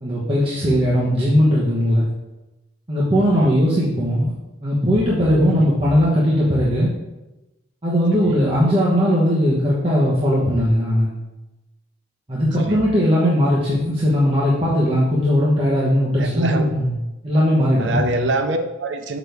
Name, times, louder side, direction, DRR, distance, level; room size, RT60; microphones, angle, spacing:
voice 1, 0.0-2.1 2.9-4.3 4.6-6.9 7.8-11.1 12.3-16.9 17.2-18.0, equal, 30° right, -8 dB, 1.1 m, -18 dB
voice 2, 3.2-3.5 5.5-5.7 8.2-8.4 12.6-12.8 16.2-16.7 17.8-19.2, right 2 dB, 70° right, 7 dB, 0.5 m, -25 dB
6.3 x 6.1 x 3.5 m, 1.0 s
head